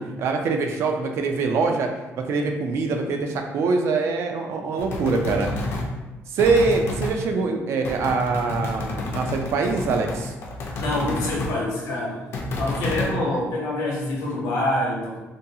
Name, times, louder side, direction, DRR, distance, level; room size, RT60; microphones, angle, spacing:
voice 1, 0.2-1.9 2.2-5.6 6.3-10.3, right 4 dB, 55° right, 4 dB, 0.3 m, -23 dB
sound 1, 4.8-5.9 6.4-7.2 7.8-11.5 12.3-13.2, left 1 dB, 50° left, 0.4 m, -30 dB
voice 2, 10.7-12.2 12.6-15.2, left 1 dB, 90° left, -3 dB, 0.8 m, -26 dB
2.5 x 2.3 x 2.7 m, 1.1 s
cardioid pair, 165°, 5 cm